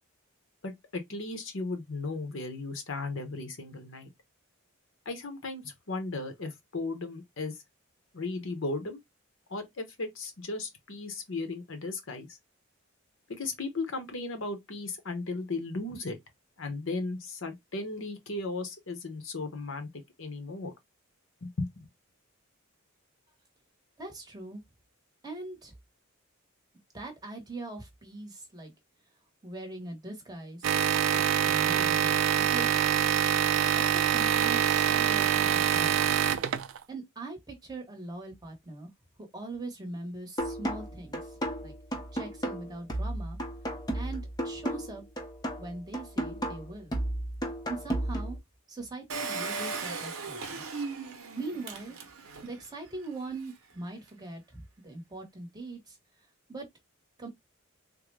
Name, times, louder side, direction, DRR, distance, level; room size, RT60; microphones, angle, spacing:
voice 1, 0.6-4.1 5.1-7.6 8.1-9.0 9.5-12.3 13.3-16.2 16.6-19.9 20.2-20.7 21.4-21.9, left 3 dB, 65° left, 0.9 m, -36 dB
voice 2, 24.0-24.6 25.2-25.7 26.9-28.7 29.4-30.7 31.1-32.8 33.6-36.3 36.9-38.9 39.3-41.4 41.6-41.7 42.1-43.4 43.9-45.0 45.6-46.9 47.7-48.4 48.7-50.6 51.4-52.0 52.4-56.0 56.5-56.7 57.2-57.3, right 2 dB, 20° right, 0.9 m, -41 dB
sound 1, 30.6-36.8, right 9 dB, 65° right, 0.4 m, -25 dB
sound 2, 40.4-48.4, right 1 dB, 20° left, 0.7 m, -34 dB
Engine, 49.1-52.6 53.0-53.1 53.3-53.4, right 4 dB, 85° right, 0.7 m, -37 dB
3.7 x 2.1 x 3.1 m
head